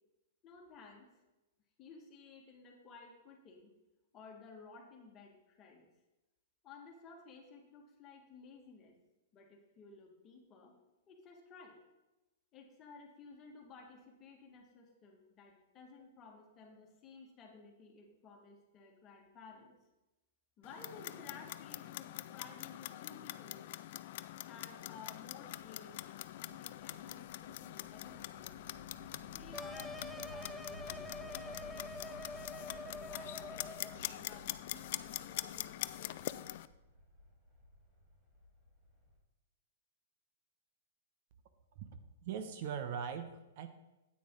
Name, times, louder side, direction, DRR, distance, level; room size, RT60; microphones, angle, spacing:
voice 1, 0.4-1.1 1.8-3.7 4.1-5.9 6.6-8.9 9.3-10.8 11.1-11.8 12.5-19.8 20.6-23.7 24.4-26.1 26.4-28.6 29.3-32.2 32.6-36.2, left 4 dB, 25° left, 1 dB, 1.8 m, -56 dB
Clock, 20.6-36.7, left 14 dB, 55° left, 0.4 m, -44 dB
sound 1, 24.0-39.2, left 1 dB, 25° right, 3.9 m, -57 dB
sound 2, 29.5-34.0, left 1 dB, 5° right, 0.5 m, -46 dB
voice 2, 42.2-43.7, right 7 dB, 50° right, 9 dB, 0.8 m, -40 dB
9.2 x 8.6 x 3.8 m, 1.0 s
hypercardioid pair, 145°, 0 cm